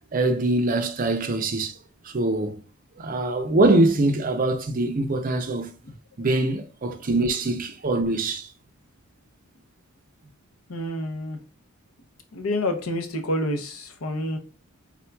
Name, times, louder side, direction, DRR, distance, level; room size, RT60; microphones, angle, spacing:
voice 1, 0.1-1.8 2.0-2.6 3.0-5.7 6.2-8.5, right 2 dB, 40° right, 0.5 m, -23 dB
voice 2, 10.7-11.4 12.3-14.4, left 1 dB, 75° left, 0.8 m, -28 dB
4.4 x 3.7 x 2.3 m
head